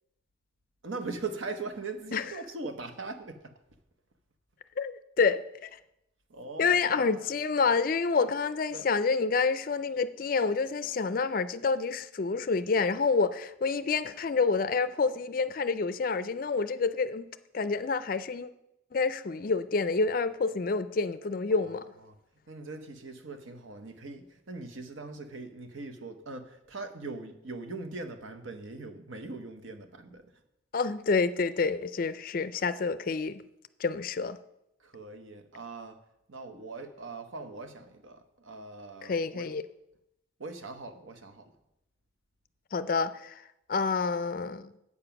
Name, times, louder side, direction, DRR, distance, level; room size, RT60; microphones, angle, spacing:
voice 1, 0.8-3.5 6.3-7.3 8.7-8.9 21.5-21.6 22.1-22.2 22.5-30.3 34.8-36.0 36.3-39.5 40.4-41.5, right 3 dB, 85° right, 1.0 m, -41 dB
voice 2, 4.8-5.7 6.6-17.3 17.5-18.5 18.9-21.8 30.7-33.4 33.8-34.4 39.0-39.7 42.7-43.4 43.7-44.7, left 4 dB, 45° left, 0.4 m, -28 dB
8.4 x 7.0 x 5.8 m
head